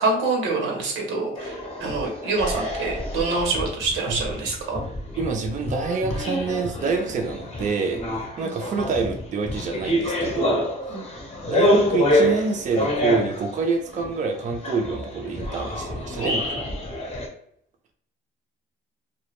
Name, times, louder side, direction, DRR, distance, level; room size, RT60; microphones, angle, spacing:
voice 1, 0.0-4.8 10.9-11.0 16.2-16.4, right 3 dB, 85° right, 1 dB, 0.7 m, -26 dB
sound 1, 1.3-17.3, left 1 dB, 30° left, 0.6 m, -27 dB
voice 2, 5.2-8.0 8.4-10.7 11.4-16.5, right 4 dB, 40° right, 3 dB, 0.4 m, -26 dB
2.2 x 2.1 x 2.9 m, 0.69 s
cardioid pair, 90°, 20 cm